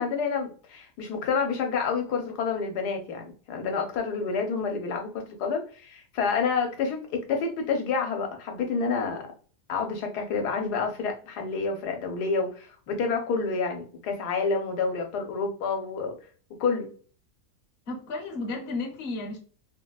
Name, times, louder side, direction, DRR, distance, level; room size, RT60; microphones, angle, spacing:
voice 1, 0.0-9.3 9.7-16.1 16.6-16.9, left 5 dB, 75° left, 1.3 m, -28 dB
voice 2, 17.9-19.4, left 3 dB, 50° left, 0.8 m, -33 dB
3.8 x 2.2 x 2.2 m
omnidirectional pair, 1.7 m